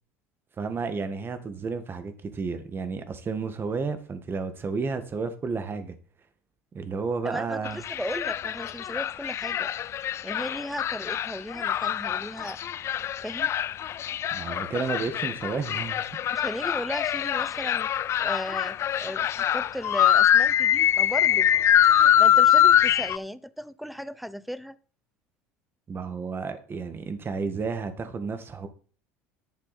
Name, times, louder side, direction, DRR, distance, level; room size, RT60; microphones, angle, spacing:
voice 1, 0.6-6.0 6.7-7.8 14.3-16.1 25.9-28.7, right 4 dB, 30° right, 1.8 m, -32 dB
voice 2, 7.2-9.7 10.0-12.6 13.2-13.5 16.3-17.9 18.2-21.5 21.9-24.8, equal, ahead, 0.6 m, -36 dB
sound 1, 7.6-23.2, left 11 dB, 40° left, 0.4 m, -23 dB
11.0 x 7.4 x 4.3 m
hypercardioid pair, 85°, 7 cm